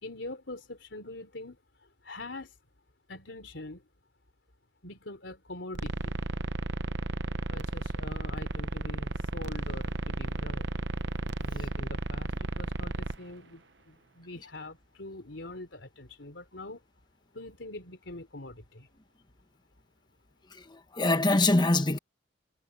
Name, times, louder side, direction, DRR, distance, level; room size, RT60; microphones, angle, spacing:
voice 1, 0.0-2.6 3.1-3.9 4.8-6.1 7.5-10.7 11.4-16.8 17.3-18.9, left 2 dB, 80° left, 3.4 m, -44 dB
sound 1, 5.7-13.2, right 2 dB, 65° right, 0.9 m, -33 dB
voice 2, 20.5-22.0, left 2 dB, 25° left, 1.1 m, -24 dB
head